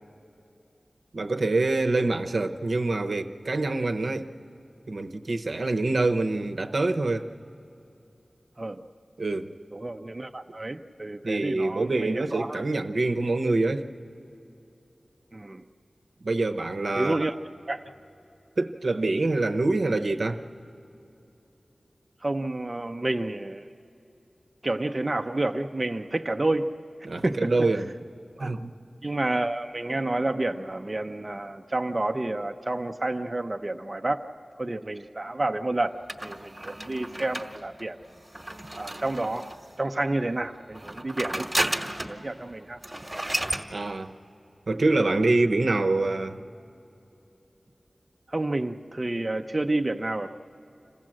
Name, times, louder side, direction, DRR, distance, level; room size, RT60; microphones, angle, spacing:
voice 1, 1.1-4.3 4.9-7.3 9.2-9.5 11.2-13.9 16.2-17.3 18.6-20.4 27.0-27.9 28.4-28.7 43.7-44.1 44.7-46.4, right 2 dB, 70° right, 6 dB, 0.8 m, -25 dB
voice 2, 9.7-12.6 15.3-15.6 16.9-17.3 17.7-17.8 22.2-23.7 24.6-26.7 27.2-27.5 28.4-28.5 29.0-34.2 34.6-38.0 38.8-39.5 39.8-41.5 41.9-42.8 48.3-50.3, right 2 dB, 35° right, 4 dB, 0.6 m, -29 dB
sound 1, 36.1-39.7 40.7-42.2 42.5-42.6 42.8-43.7, right 1 dB, 20° right, 1.2 m, -32 dB
27.0 x 15.0 x 7.6 m, 2.9 s
wide cardioid pair, 60°, 0 cm